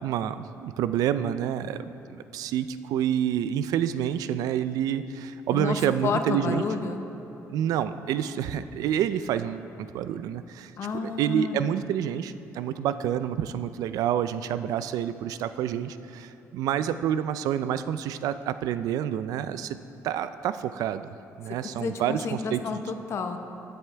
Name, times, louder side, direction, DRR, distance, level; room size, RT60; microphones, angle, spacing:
voice 1, 0.0-6.6 7.5-10.7 11.0-19.8 20.0-22.8, right 10 dB, 85° right, 13 dB, 0.4 m, -28 dB
voice 2, 6.0-7.0 10.8-11.6 21.8-23.4, left 5 dB, 50° left, 6 dB, 0.7 m, -30 dB
15.5 x 7.9 x 3.3 m, 2.8 s
cardioid pair, 140°, 6 cm